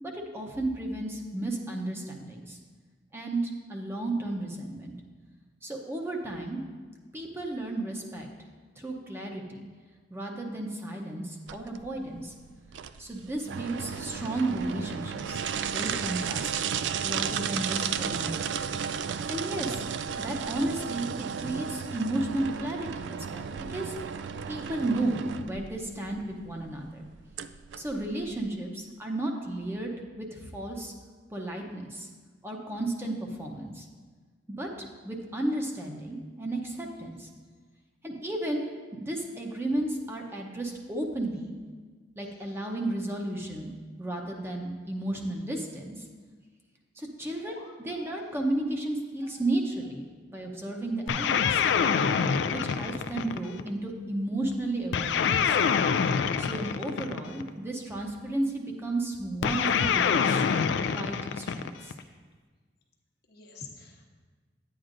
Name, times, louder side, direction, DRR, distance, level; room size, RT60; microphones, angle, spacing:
voice 1, 0.0-2.6 3.1-4.9 5.6-6.6 7.1-8.3 8.8-9.6 10.1-12.3 13.0-15.4 15.7-16.5 17.0-18.6 19.3-19.8 20.2-23.9 24.5-27.0 27.8-29.9 30.2-30.9 31.3-32.1 32.4-33.9 34.5-37.3 38.0-38.6 38.9-41.5 42.2-43.7 44.0-46.0 47.0-51.6 52.5-55.6 56.4-60.5 60.9-61.9, right 1 dB, 15° right, 0 dB, 0.7 m, -33 dB
sound 1, 11.5-28.5, right 7 dB, 85° right, 0.3 m, -34 dB
voice 2, 47.4-48.4 49.2-49.4 50.4-50.6 63.3-64.1, left 4 dB, 65° left, 0 dB, 1.0 m, -49 dB
sound 2, 51.1-53.7 54.9-57.5 59.4-62.0, left 6 dB, 80° left, 0.3 m, -26 dB
9.8 x 8.8 x 2.6 m, 1.5 s
head